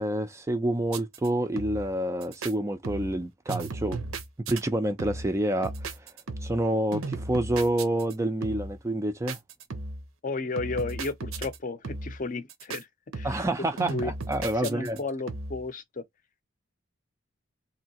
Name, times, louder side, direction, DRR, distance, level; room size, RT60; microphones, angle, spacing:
voice 1, 0.0-4.0 4.5-5.7 6.4-9.4 13.2-15.0, right 1 dB, 15° right, 0.3 m, -28 dB
sound 1, 0.9-1.3 1.6-2.0 2.2-2.5 2.8-3.2 3.5-4.6 5.0-5.4 5.6-6.7 6.9-8.1 8.4-8.8 9.3-10.1 10.6-11.6 11.8-12.2 12.5-12.8 13.1-13.5 13.8-15.0 15.3-15.7, right 3 dB, 90° right, 0.7 m, -36 dB
voice 2, 10.2-12.9 13.1-14.1 14.6-16.0, left 3 dB, 40° left, 0.5 m, -33 dB
3.1 x 2.7 x 2.8 m
head